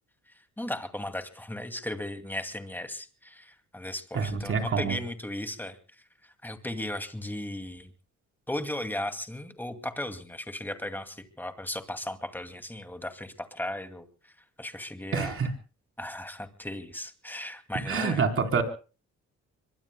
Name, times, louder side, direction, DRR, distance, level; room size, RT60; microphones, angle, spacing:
voice 1, 0.6-5.8 6.4-7.9 8.5-14.1 14.6-15.4 16.0-18.3, left 1 dB, 5° left, 7 dB, 2.4 m, -36 dB
voice 2, 4.1-5.0 15.1-15.5 17.8-18.6, right 5 dB, 45° right, 4 dB, 4.0 m, -27 dB
25.5 x 23.5 x 2.2 m, 0.36 s
cardioid pair, 90°, 30 cm